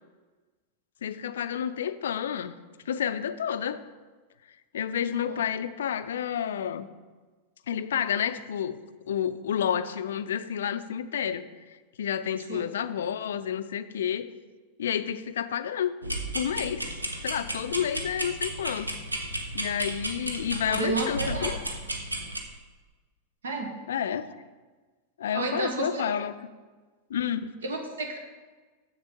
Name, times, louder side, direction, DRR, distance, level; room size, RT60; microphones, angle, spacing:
voice 1, 1.0-2.5 2.9-3.8 4.7-6.9 7.7-8.8 9.1-14.3 14.8-16.0 16.3-16.9 17.2-18.9 19.5-21.6 23.9-24.4 25.2-26.3 27.1-27.5, left 9 dB, 60° left, 13 dB, 0.4 m, -30 dB
sound 1, 16.0-22.4, right 1 dB, 85° right, 0.9 m, -33 dB
voice 2, 20.7-21.6 23.4-23.7 25.3-26.0 27.6-28.2, right 3 dB, 65° right, 3 dB, 1.4 m, -31 dB
7.2 x 6.8 x 5.2 m, 1.3 s
figure-of-eight pair, 90°, 0 cm